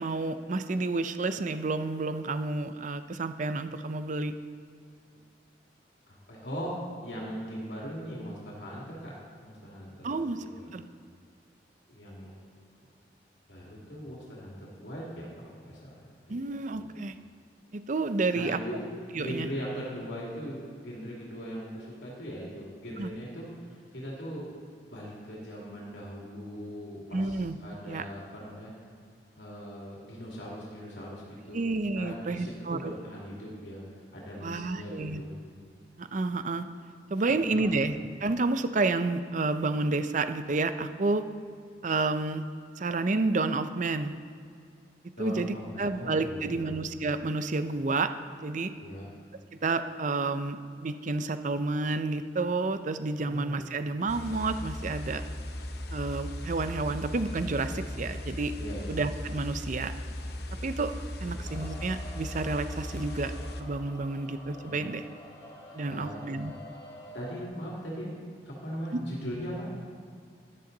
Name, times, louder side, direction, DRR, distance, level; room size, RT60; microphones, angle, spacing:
voice 1, 0.0-4.3 10.0-10.4 10.7-10.8 16.3-17.2 17.7-18.6 19.1-19.5 23.0-23.1 27.1-27.6 27.9-28.0 31.5-32.9 34.4-35.2 36.0-36.7 37.1-38.0 38.2-41.2 41.8-42.5 42.8-44.2 45.2-48.1 48.4-48.7 49.6-55.2 55.9-58.5 58.9-59.9 60.6-60.9 61.2-63.3 63.6-65.1 65.7-66.5 68.9-69.0, right 3 dB, 45° right, 10 dB, 0.5 m, -30 dB
voice 2, 6.1-9.1 9.4-10.7 11.9-12.4 13.5-16.4 16.7-16.8 18.3-24.5 24.9-28.7 29.3-31.7 32.0-33.8 34.1-35.3 37.3-37.7 45.2-46.7 48.8-49.0 53.2-53.8 58.6-58.8 61.2-61.4 64.6-64.9 65.6-66.2 67.1-68.2 68.4-69.7, equal, 85° left, -5 dB, 2.4 m, -40 dB
sound 1, 54.1-63.6, left 1 dB, 65° left, 0.9 m, -37 dB
sound 2, 61.4-67.5, equal, 20° left, 1.8 m, -48 dB
12.5 x 11.0 x 3.9 m, 2.2 s
head